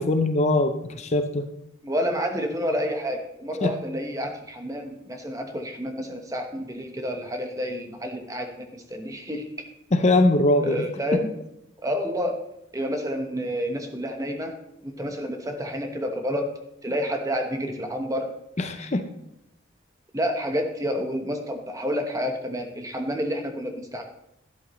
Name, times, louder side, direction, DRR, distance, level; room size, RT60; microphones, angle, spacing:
voice 1, 0.0-1.5 3.6-3.7 9.9-11.2 18.6-19.0, left 2 dB, 35° left, 7 dB, 0.6 m, -22 dB
voice 2, 1.8-9.5 10.6-11.3 11.8-12.4 12.7-14.6 14.8-16.5 16.8-18.3 20.1-24.0, equal, 15° right, 4 dB, 1.1 m, -29 dB
12.0 x 11.0 x 3.1 m, 0.82 s
head